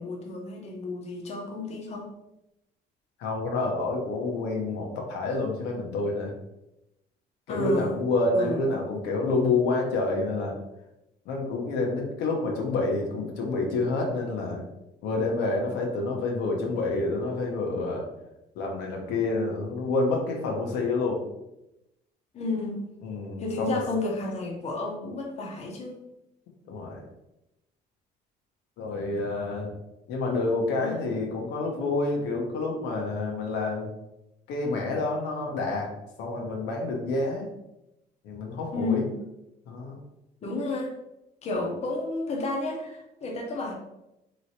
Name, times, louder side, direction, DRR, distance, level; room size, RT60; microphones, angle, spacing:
voice 1, 0.0-2.1 7.5-8.0 8.3-8.6 22.3-22.8 23.4-26.0 30.8-31.1 38.7-39.2 40.4-40.9 41.4-43.7, left 2 dB, 40° left, 0 dB, 0.7 m, -31 dB
voice 2, 3.2-6.3 7.5-10.6 11.3-14.6 15.0-18.1 18.6-21.2 23.0-23.8 26.7-27.0 28.8-29.7 30.1-33.9 34.5-35.9 36.2-37.5 38.2-39.0 39.7-40.0, left 3 dB, 85° left, 0 dB, 0.8 m, -28 dB
3.0 x 3.0 x 2.7 m, 0.90 s
cardioid pair, 110°, 17 cm